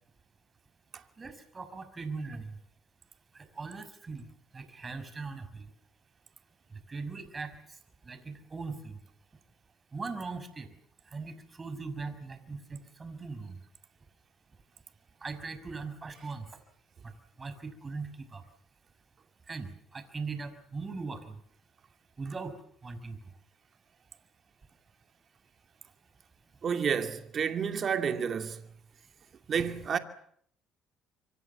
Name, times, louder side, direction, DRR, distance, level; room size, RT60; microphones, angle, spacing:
voice 1, 1.2-2.6 3.3-4.3 4.5-5.7 6.7-7.5 8.0-9.0 9.9-10.7 11.1-13.6 15.2-16.5 17.0-17.1 17.4-18.4 19.5-21.4 22.2-22.5 22.8-23.2, right 4 dB, 30° right, 6.0 m, -40 dB
voice 2, 26.6-28.6 29.5-30.0, right 7 dB, 45° right, 2.6 m, -30 dB
26.5 x 25.5 x 7.0 m
supercardioid pair, 70°, 0 cm